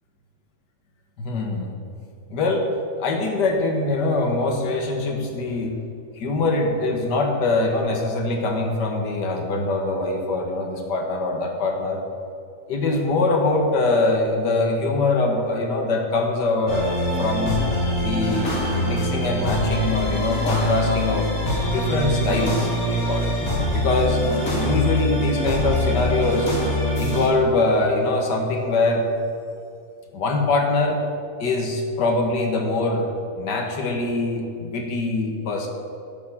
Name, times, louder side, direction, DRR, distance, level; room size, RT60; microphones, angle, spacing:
voice 1, 1.2-1.7 2.3-2.7 3.0-5.8 6.2-12.0 12.7-17.6 18.0-21.3 21.6-23.3 23.7-24.2 24.5-26.5 27.0-29.1 30.1-31.0 31.4-35.7, left 2 dB, 75° left, 2 dB, 1.9 m, -23 dB
sound 1, 16.7-27.3, left 1 dB, 55° left, 2.8 m, -24 dB
11.0 x 6.7 x 7.3 m, 2.5 s
omnidirectional pair, 1.8 m